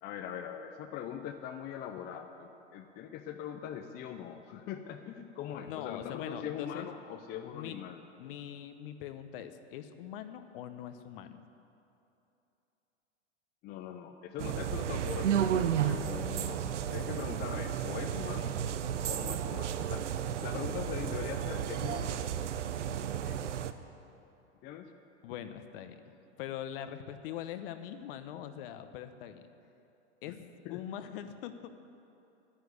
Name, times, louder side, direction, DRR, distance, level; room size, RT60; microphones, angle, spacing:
voice 1, 0.0-8.0 13.6-18.6 19.1-20.1 20.4-22.1 23.2-23.4 24.6-24.9 30.3-30.4 30.6-30.8, left 9 dB, 25° left, 5 dB, 0.6 m, -41 dB
voice 2, 5.6-6.9 7.5-7.8 8.2-11.4 25.2-26.0 26.4-29.4 30.2-30.4 30.7-31.7, left 10 dB, 50° left, 10 dB, 1.0 m, -42 dB
sound 1, 14.4-23.7, right 9 dB, 80° right, 0.8 m, -33 dB
11.5 x 10.0 x 8.2 m, 2.8 s
hypercardioid pair, 125°, 35 cm